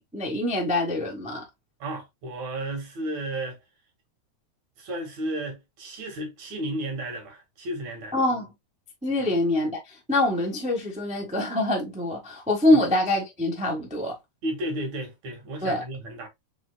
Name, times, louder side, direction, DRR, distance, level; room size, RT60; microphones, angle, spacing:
voice 1, 0.0-1.4 8.1-8.5 9.0-14.2 15.6-15.8, left 1 dB, 5° right, 0.6 m, -25 dB
voice 2, 1.8-3.6 4.8-8.2 9.2-9.3 12.7-12.9 14.4-16.3, right 1 dB, 70° right, 3.0 m, -33 dB
6.1 x 3.8 x 2.3 m
omnidirectional pair, 3.3 m